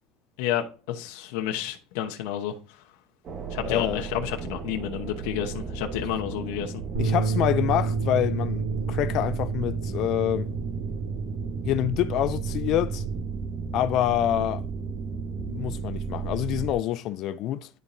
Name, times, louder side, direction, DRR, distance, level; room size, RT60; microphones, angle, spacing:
voice 1, 0.4-2.8 3.5-6.8, left 10 dB, 75° left, 0.9 m, -31 dB
sound 1, 3.2-16.7, right 6 dB, 30° right, 1.0 m, -34 dB
voice 2, 3.6-4.0 7.0-10.5 11.6-13.0 13.7-14.6 15.4-17.7, left 12 dB, 50° left, 0.4 m, -26 dB
Bass guitar, 6.9-13.2, right 4 dB, 65° right, 3.3 m, -30 dB
11.0 x 4.2 x 2.6 m
cardioid pair, 145°, 0 cm